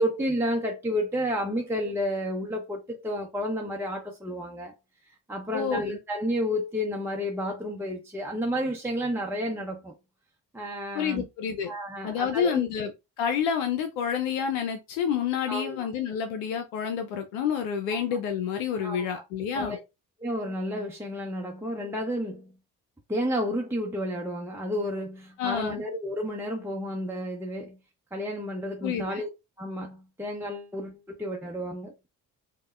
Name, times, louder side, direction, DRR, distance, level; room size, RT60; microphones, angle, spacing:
voice 1, 0.0-4.7 5.1-9.9 10.5-11.2 11.7-12.7 15.5-15.9 17.9-18.2 18.8-19.2 19.5-19.8 20.2-22.5 23.1-27.8 28.1-29.3 29.6-31.9, equal, 5° right, 0.7 m, -31 dB
voice 2, 5.5-6.0 10.9-11.7 12.0-12.9 13.2-19.8 25.4-25.8 28.8-29.2, left 7 dB, 75° left, 0.6 m, -29 dB
5.3 x 2.1 x 2.3 m
hypercardioid pair, 45°, 44 cm